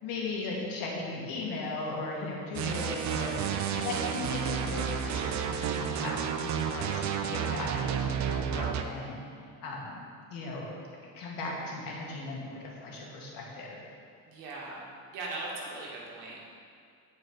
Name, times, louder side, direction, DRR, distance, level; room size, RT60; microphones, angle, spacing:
voice 1, 0.0-3.4 3.7-9.2 9.6-10.0 10.3-10.7 11.1-13.8, left 3 dB, 65° left, -3 dB, 1.9 m, -37 dB
sound 1, 2.5-8.8, right 8 dB, 50° right, 0.5 m, -31 dB
voice 2, 14.3-16.5, right 2 dB, 85° right, -3 dB, 1.8 m, -40 dB
8.4 x 4.7 x 4.5 m, 2.3 s
cardioid pair, 115°, 37 cm